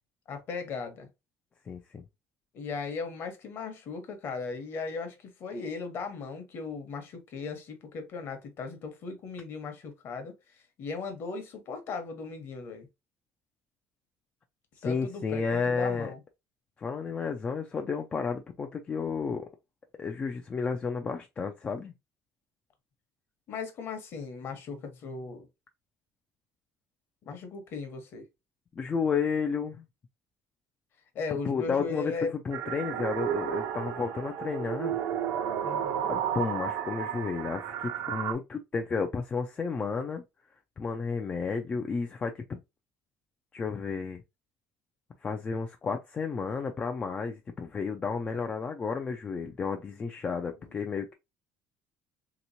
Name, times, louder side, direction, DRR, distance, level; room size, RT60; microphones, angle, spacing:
voice 1, 0.3-1.1 2.5-10.3 10.8-12.9 14.8-16.2 23.5-25.5 27.2-28.2 31.1-32.3 35.6-36.1 50.6-50.7, left 4 dB, 40° left, 0.9 m, -37 dB
voice 2, 1.7-2.0 14.8-16.1 16.8-19.4 20.0-21.9 28.8-29.9 31.3-32.1 32.4-35.0 36.1-40.2 40.8-42.6 43.5-44.2 45.2-51.1, left 5 dB, 20° left, 0.3 m, -32 dB
sound 1, 32.5-38.3, right 10 dB, 70° right, 0.6 m, -32 dB
3.4 x 2.9 x 2.6 m
cardioid pair, 160°, 6 cm